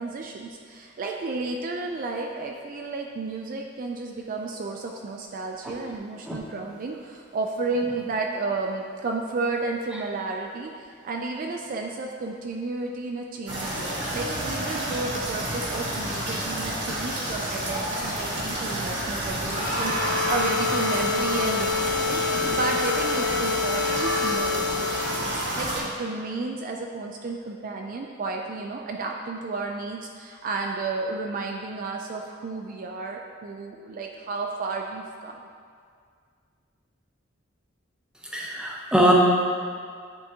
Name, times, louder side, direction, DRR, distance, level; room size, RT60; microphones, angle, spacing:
voice 1, 0.0-35.4, right 3 dB, 45° right, 1 dB, 0.3 m, -32 dB
sound 1, 13.4-25.8, right 1 dB, 60° right, 1.3 m, -29 dB
sound 2, 14.0-22.5, equal, 25° left, 0.8 m, -41 dB
sound 3, 19.5-25.6, left 6 dB, 75° left, 0.4 m, -28 dB
voice 2, 38.3-39.1, equal, 5° right, -3 dB, 0.7 m, -22 dB
9.5 x 3.6 x 2.8 m, 2.1 s
head